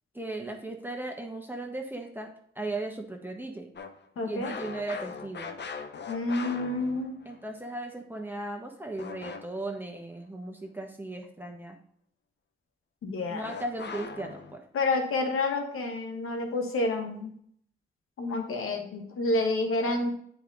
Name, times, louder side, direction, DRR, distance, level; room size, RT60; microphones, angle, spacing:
voice 1, 0.1-2.3 2.5-3.7 4.2-5.5 7.2-11.8 13.3-14.6, right 2 dB, 10° right, 1 dB, 1.4 m, -37 dB
sound 1, 3.8-7.4 9.0-9.7 13.4-14.6, left 5 dB, 55° left, 0.8 m, -40 dB
voice 2, 4.2-4.6 6.1-7.1 13.0-13.5 14.7-17.3 18.2-20.1, left 2 dB, 80° left, 4 dB, 1.4 m, -29 dB
8.1 x 4.9 x 4.0 m, 0.66 s
supercardioid pair, 50°, 21 cm